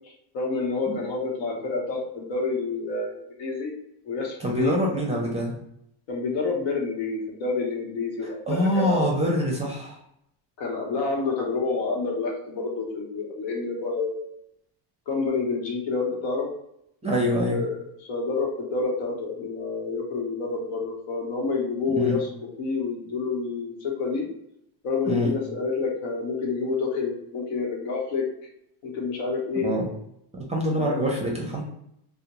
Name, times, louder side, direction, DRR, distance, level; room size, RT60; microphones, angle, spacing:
voice 1, 0.3-3.7 4.0-4.7 6.1-9.1 10.6-14.3 15.1-16.5 17.4-22.3 22.6-24.3 24.8-28.2 28.8-29.7 30.8-31.1, left 4 dB, 70° left, 0 dB, 1.0 m, -28 dB
voice 2, 4.4-5.6 8.5-10.0 17.0-17.6 21.9-22.2 25.1-25.3 29.6-29.8 30.3-31.6, equal, 15° right, -2 dB, 0.5 m, -25 dB
2.4 x 2.1 x 2.9 m, 0.76 s
cardioid pair, 120°, 47 cm